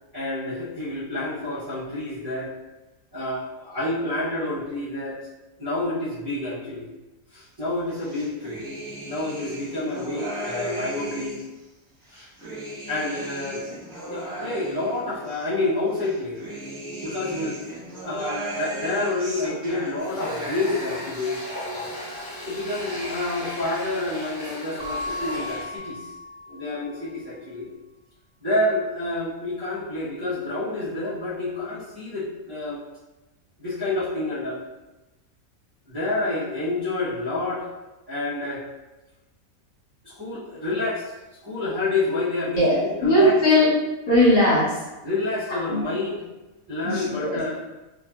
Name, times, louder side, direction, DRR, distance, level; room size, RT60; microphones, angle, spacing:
voice 1, 0.1-2.5 3.1-5.2 5.6-6.8 7.3-8.6 9.0-11.4 12.1-12.3 12.9-13.6 14.0-16.4 17.0-17.6 18.0-21.4 22.4-26.1 26.5-27.7 28.4-32.8 33.6-34.6 35.9-37.7 38.1-38.7 40.0-41.1 41.4-43.4 45.0-46.2 46.7-47.6, left 2 dB, 25° right, -13 dB, 0.5 m, -28 dB
sound 1, 7.9-11.5 12.0-15.4 15.9-20.8 21.0-21.9 22.2-23.0, right 1 dB, 5° right, 1.3 m, -36 dB
Water tap faucet, 20.0-25.8, left 1 dB, 15° left, 1.2 m, -35 dB
Keyboard (musical) / Bell, 24.8-27.2, left 1 dB, 70° right, 1.0 m, -35 dB
voice 2, 42.6-43.7 44.1-44.8 45.7-45.8 46.8-47.4, left 1 dB, 65° left, -7 dB, 1.2 m, -19 dB
2.9 x 2.5 x 2.3 m, 1.1 s
omnidirectional pair, 1.6 m